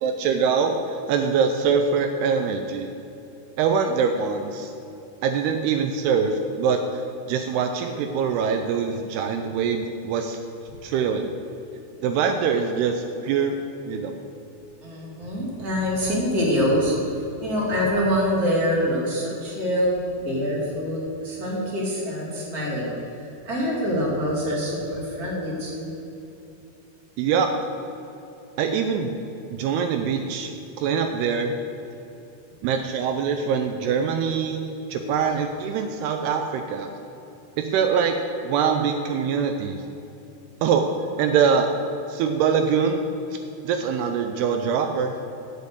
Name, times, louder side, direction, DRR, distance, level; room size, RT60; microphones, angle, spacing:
voice 1, 0.0-2.9 3.6-4.7 5.2-10.4 10.8-11.4 12.0-13.6 13.9-14.2 27.2-27.5 28.6-29.1 29.5-30.5 30.8-31.5 32.6-34.6 34.9-36.9 37.6-38.1 38.4-39.8 40.6-40.9 41.2-41.7 42.1-43.0 43.6-45.2, right 6 dB, 80° right, 5 dB, 2.6 m, -23 dB
voice 2, 14.8-22.9 23.4-25.9, equal, 25° right, -4 dB, 2.6 m, -25 dB
10.5 x 6.5 x 8.1 m, 2.9 s
omnidirectional pair, 4.7 m